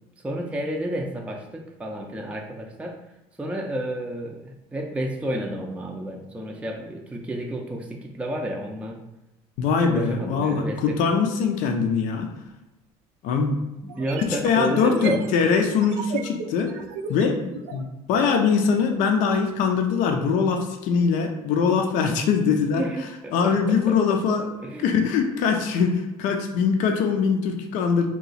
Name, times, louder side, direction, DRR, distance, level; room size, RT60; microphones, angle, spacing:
voice 1, 0.2-3.0 3.4-9.0 9.8-11.0 13.9-15.2 22.8-24.0 24.6-24.9, right 1 dB, 10° right, 1 dB, 0.4 m, -31 dB
voice 2, 9.6-12.3 13.2-13.6 14.2-16.7 17.1-22.8 23.3-24.5 24.8-28.1, left 5 dB, 70° left, 4 dB, 0.5 m, -22 dB
sound 1, 12.5-12.6 13.9-17.9, right 6 dB, 75° right, 0.5 m, -35 dB
2.9 x 2.3 x 4.0 m, 0.98 s
supercardioid pair, 90°, 14 cm